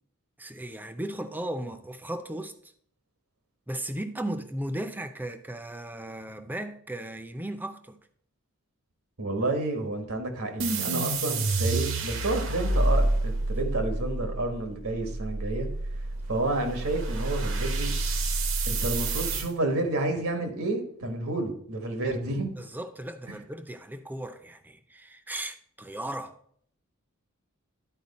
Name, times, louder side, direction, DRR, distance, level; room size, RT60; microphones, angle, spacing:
voice 1, 0.4-2.7 3.7-8.0 22.6-26.4, right 1 dB, 10° right, 0.5 m, -36 dB
voice 2, 9.2-15.7 16.3-17.9 18.6-22.6, right 2 dB, 80° right, 1.5 m, -30 dB
sound 1, 10.6-19.5, right 2 dB, 65° right, 0.9 m, -28 dB
11.0 x 4.6 x 4.1 m
head